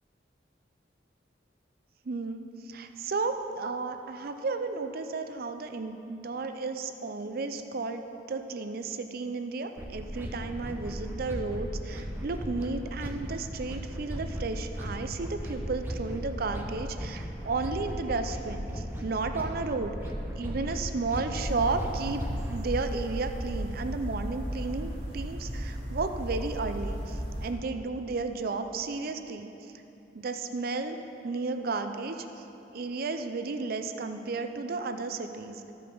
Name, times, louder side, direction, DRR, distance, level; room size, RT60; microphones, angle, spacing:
voice 1, 2.1-20.0 20.4-29.5 30.1-31.0 31.2-32.2 32.7-35.6, right 3 dB, 55° right, 8 dB, 0.5 m, -33 dB
sound 1, 9.8-22.6, equal, 10° right, 0.9 m, -37 dB
sound 2, 21.3-27.5, equal, 75° right, 2.1 m, -35 dB
13.5 x 5.4 x 5.4 m, 2.9 s
head